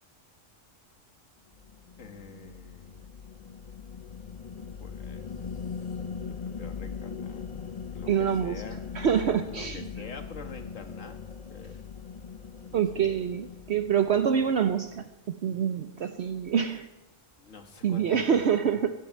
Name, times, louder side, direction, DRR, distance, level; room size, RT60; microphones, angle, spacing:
sound 1, 1.5-15.1, left 6 dB, 40° left, 0.6 m, -40 dB
voice 1, 2.0-3.1 4.8-5.8 6.3-7.5 7.9-8.9 9.2-11.2 11.5-11.9 12.7-13.1 17.4-18.7, left 4 dB, 80° left, 6 dB, 2.0 m, -46 dB
voice 2, 8.1-8.6 8.9-9.9 12.7-15.0 15.4-16.9 17.8-18.9, right 8 dB, 60° right, 8 dB, 1.0 m, -26 dB
14.5 x 10.5 x 9.2 m, 1.0 s
omnidirectional pair, 1.3 m